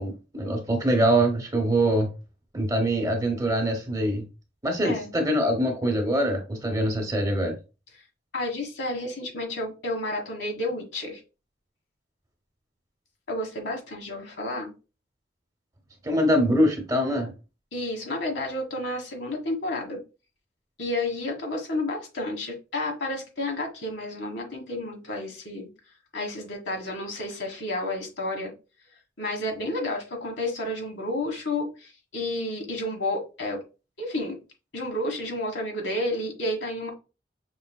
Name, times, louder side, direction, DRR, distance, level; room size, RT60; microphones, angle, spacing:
voice 1, 0.0-2.1 2.5-4.2 4.6-7.6 16.0-17.3, right 1 dB, 20° right, 0.9 m, -24 dB
voice 2, 8.3-11.2 13.3-14.7 17.7-20.0 20.8-25.7 26.1-28.5 29.2-33.6 34.0-34.4 34.7-36.9, left 1 dB, 75° left, 1.5 m, -31 dB
5.5 x 3.3 x 2.2 m
head